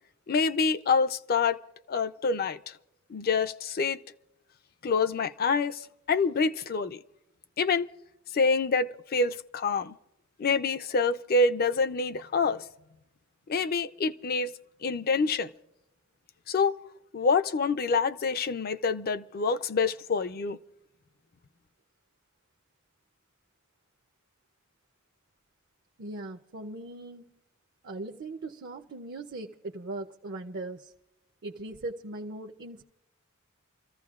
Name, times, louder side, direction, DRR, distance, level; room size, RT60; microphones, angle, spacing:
voice 1, 0.3-1.6 1.9-2.7 3.1-4.0 4.8-7.0 7.6-7.9 8.3-10.0 10.4-12.6 13.5-14.5 14.8-15.5 16.5-16.7 17.1-20.6, left 4 dB, 45° left, 0.5 m, -26 dB
voice 2, 26.0-27.4 27.8-30.9 31.4-32.8, right 2 dB, 55° right, 0.6 m, -39 dB
29.5 x 15.0 x 2.4 m
head